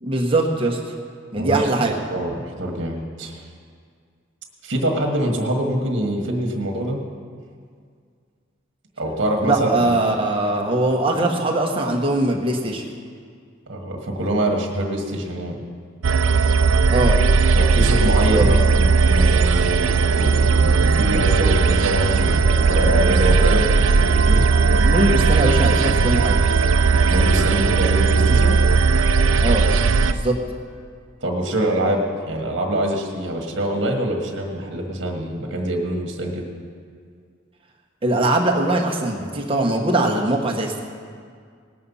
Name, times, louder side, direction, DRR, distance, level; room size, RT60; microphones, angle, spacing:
voice 1, 0.0-0.8 1.3-1.9 9.5-12.8 16.9-17.2 18.3-18.4 24.8-26.4 29.4-29.6 30.1-30.3 38.0-40.8, right 2 dB, 30° right, 0 dB, 1.3 m, -21 dB
voice 2, 1.4-3.4 4.6-7.0 9.0-9.9 13.7-15.6 17.6-24.4 27.1-28.6 31.2-36.4, right 1 dB, 65° right, 1 dB, 1.6 m, -24 dB
sound 1, 16.0-30.1, right 4 dB, 90° right, 0.5 m, -17 dB
19.0 x 7.7 x 5.6 m, 2.1 s
head